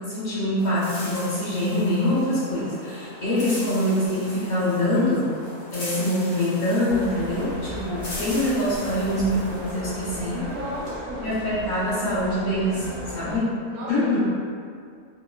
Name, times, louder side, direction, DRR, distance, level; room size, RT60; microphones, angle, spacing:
voice 1, 0.1-5.3 5.7-10.4 11.2-13.5 13.9-14.2, left 1 dB, 45° left, -11 dB, 0.6 m, -24 dB
sound 1, 0.6-10.9, left 1 dB, 65° left, 1.1 m, -40 dB
sound 2, 6.9-13.4, equal, 15° right, 0.3 m, -36 dB
voice 2, 10.3-11.4 13.7-14.2, right 1 dB, 75° right, -4 dB, 1.0 m, -33 dB
2.9 x 2.1 x 2.3 m, 2.2 s
omnidirectional pair, 1.6 m